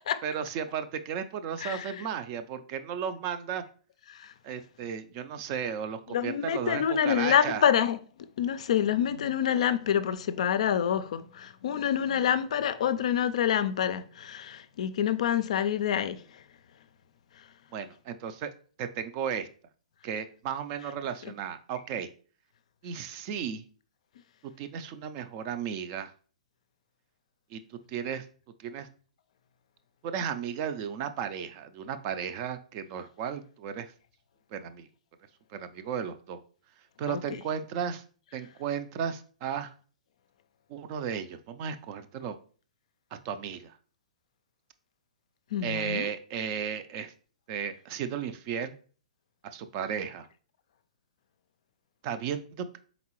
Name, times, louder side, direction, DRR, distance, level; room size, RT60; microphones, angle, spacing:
voice 1, 0.2-3.6 4.4-7.6 17.7-18.5 18.8-19.5 20.0-22.1 22.8-23.6 24.6-26.1 27.5-28.3 28.6-28.9 30.0-33.9 34.5-34.9 35.5-36.4 37.0-38.0 38.3-39.7 40.7-42.4 43.1-43.8 45.6-47.1 47.5-48.7 49.4-50.3 52.0-52.7, right 8 dB, 40° right, 0.4 m, -34 dB
voice 2, 1.6-2.0 4.1-4.3 6.1-8.0 8.4-16.4 17.4-17.5 37.1-37.2 45.5-46.1, left 9 dB, 60° left, 0.3 m, -27 dB
4.0 x 3.6 x 3.0 m
hypercardioid pair, 120°, 4 cm